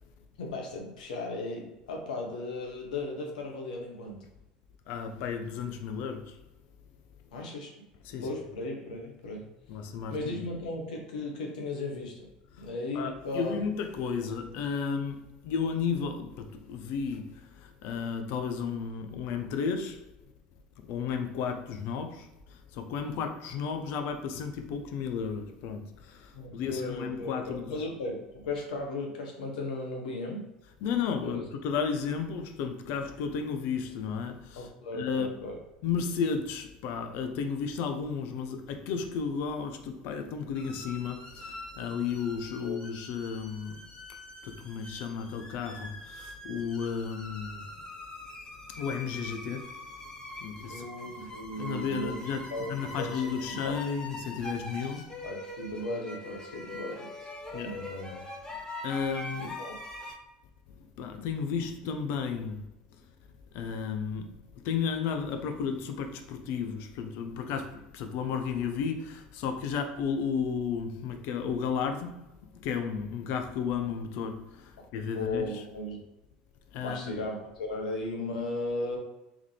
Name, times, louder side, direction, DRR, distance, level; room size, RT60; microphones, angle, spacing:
voice 1, 0.4-4.2 7.3-7.7 8.2-9.5 10.1-12.3 12.6-13.6 26.3-30.5 31.2-31.4 34.6-35.6 42.6-42.8 50.7-53.3 53.6-53.8 55.2-57.3 57.6-58.2 59.4-59.7 75.1-76.0 76.8-79.0, left 2 dB, 80° left, 1.0 m, -36 dB
voice 2, 4.9-6.4 8.0-8.3 9.7-10.4 12.5-12.7 12.9-20.0 20.8-27.8 30.8-34.7 34.9-35.4 35.8-43.8 44.4-47.6 48.8-49.7 50.4-50.9 51.6-55.1 57.5-57.8 58.8-59.5 61.0-62.7 63.5-64.4 64.6-72.2 72.5-75.6 76.7-77.1, left 6 dB, 60° left, 0.6 m, -33 dB
sound 1, 40.5-60.1, left 1 dB, 20° left, 1.1 m, -43 dB
3.6 x 3.6 x 3.2 m
hypercardioid pair, 80°, 4 cm